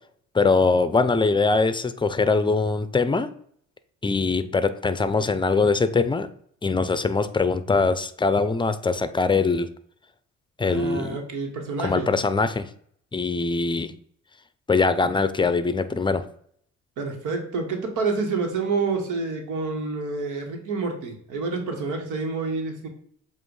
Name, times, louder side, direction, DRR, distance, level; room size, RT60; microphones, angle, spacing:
voice 1, 0.3-3.3 4.0-6.3 6.6-9.7 10.6-11.2 11.8-12.7 13.1-13.9 14.7-16.2, left 4 dB, 15° left, 12 dB, 0.5 m, -22 dB
voice 2, 10.6-12.1 17.0-22.9, right 4 dB, 85° right, 3 dB, 1.4 m, -28 dB
7.6 x 2.6 x 4.8 m, 0.63 s
cardioid pair, 90°, 30 cm